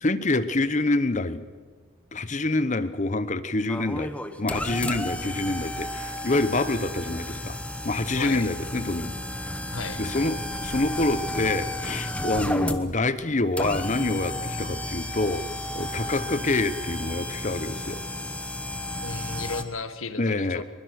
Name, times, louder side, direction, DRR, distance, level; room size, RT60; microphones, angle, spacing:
voice 1, 0.0-1.4 2.1-4.1 4.4-7.6 7.8-9.1 10.0-15.4 15.7-18.0 20.2-20.6, left 2 dB, 35° left, 12 dB, 1.0 m, -26 dB
sound 1, 3.7-19.6, left 1 dB, 5° left, 1.0 m, -33 dB
voice 2, 8.1-8.5 9.7-10.0 19.0-20.6, left 4 dB, 75° left, 10 dB, 1.5 m, -34 dB
23.0 x 21.5 x 6.5 m, 1.5 s
head